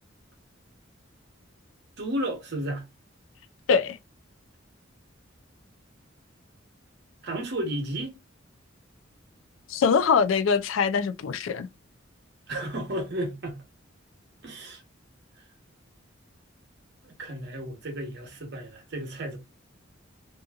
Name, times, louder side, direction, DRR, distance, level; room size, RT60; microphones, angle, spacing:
voice 1, 2.0-2.8 7.2-8.1 12.5-13.6 14.4-14.8 15.4-15.5 17.0-19.4, right 1 dB, 60° right, 0.9 m, -33 dB
voice 2, 9.7-11.7, left 6 dB, 80° left, 0.4 m, -23 dB
2.7 x 2.5 x 2.3 m
head